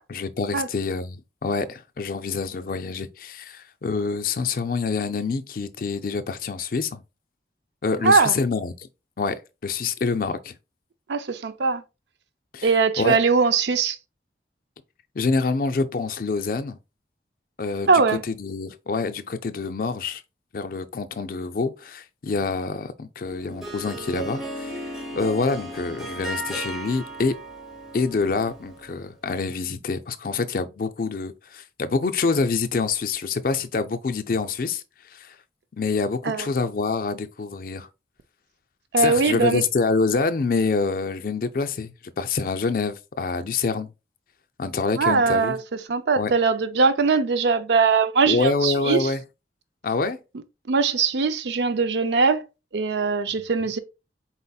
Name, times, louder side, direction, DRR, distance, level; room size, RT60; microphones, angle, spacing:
voice 1, 0.1-7.0 7.8-8.9 9.2-10.5 12.5-12.7 13.0-13.2 15.2-16.8 17.6-20.2 20.5-27.4 27.9-34.8 35.1-35.4 35.8-37.9 39.0-43.9 44.6-45.6 46.2-46.3 48.3-49.2 49.8-50.2, left 4 dB, 50° left, 0.4 m, -26 dB
voice 2, 8.0-8.4 11.1-11.8 12.6-14.0 17.9-18.2 36.2-36.5 38.9-39.6 44.9-45.6 45.9-49.1 50.7-52.4 52.7-53.8, right 4 dB, 70° right, 0.5 m, -21 dB
Harp, 23.2-29.0, right 1 dB, ahead, 0.9 m, -35 dB
4.1 x 4.0 x 2.3 m
head